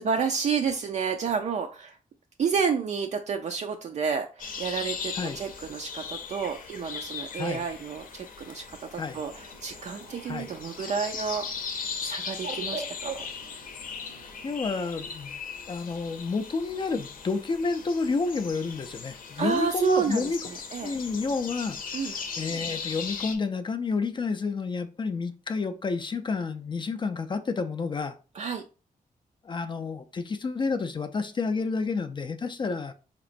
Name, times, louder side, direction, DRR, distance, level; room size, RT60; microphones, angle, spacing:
voice 1, 0.0-2.0 2.4-11.7 12.0-13.3 19.4-20.9 21.9-22.1 28.3-28.6, right 6 dB, 50° right, 0.4 m, -30 dB
sound 1, 4.4-23.3, left 6 dB, 75° left, 0.6 m, -38 dB
Bird, 9.1-14.6, right 5 dB, 75° right, 0.7 m, -44 dB
voice 2, 14.4-15.4 15.7-20.4 20.8-28.2 29.4-32.9, left 4 dB, 35° left, 0.3 m, -30 dB
4.1 x 2.9 x 2.5 m
wide cardioid pair, 125°, 14 cm